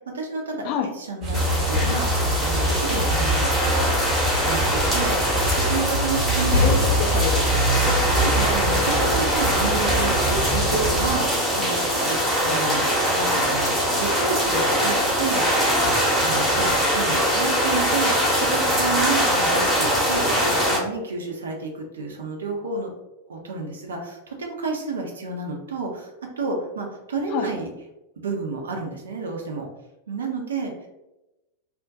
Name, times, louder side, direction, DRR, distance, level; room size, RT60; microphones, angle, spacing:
voice 1, 0.1-4.0 4.4-6.6 8.1-12.8 13.1-22.9 23.3-27.7 28.2-29.7 30.1-30.7, right 3 dB, 65° right, 1 dB, 0.5 m, -30 dB
sound 1, 1.2-11.2, right 1 dB, 30° right, 0.7 m, -25 dB
sound 2, 1.3-20.8, equal, 5° left, 0.8 m, -22 dB
sound 3, 1.6-2.0 2.5-2.6 3.1-3.9 6.3-8.3 8.7-9.5 10.1-11.0 11.9-12.5 14.0-14.1 14.6-14.9 15.3-15.4 16.5-16.7, left 3 dB, 75° left, 0.8 m, -28 dB
voice 2, 6.6-8.0 27.3-27.5, left 7 dB, 40° left, 3 dB, 0.3 m, -28 dB
2.4 x 2.1 x 2.6 m, 0.96 s
figure-of-eight pair, 90°, 0 cm